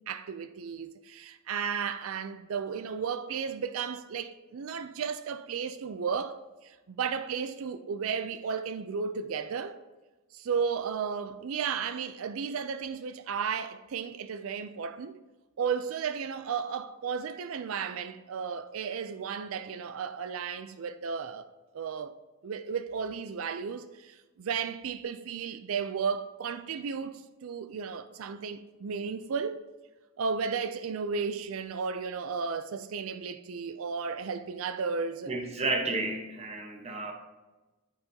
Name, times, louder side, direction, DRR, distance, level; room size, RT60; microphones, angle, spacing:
voice 1, 0.1-9.8 10.3-15.2 15.6-21.4 21.7-22.1 22.4-29.6 30.2-35.3, right 6 dB, 80° right, 0.4 m, -34 dB
voice 2, 35.3-37.1, right 2 dB, 30° right, 1.1 m, -32 dB
8.7 x 8.1 x 2.8 m
head